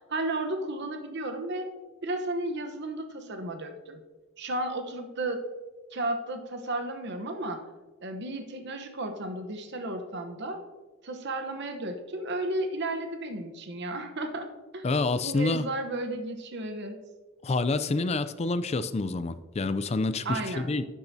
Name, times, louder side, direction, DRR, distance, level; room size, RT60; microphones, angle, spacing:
voice 1, 0.1-1.7 2.0-4.0 4.4-5.4 5.9-7.6 8.0-10.6 11.0-14.5 14.7-14.8 15.2-17.0 20.2-20.7, right 2 dB, 55° right, 6 dB, 1.0 m, -33 dB
voice 2, 14.8-15.6 17.4-20.8, left 3 dB, 30° left, 12 dB, 0.4 m, -28 dB
12.0 x 8.6 x 2.7 m, 1.3 s
head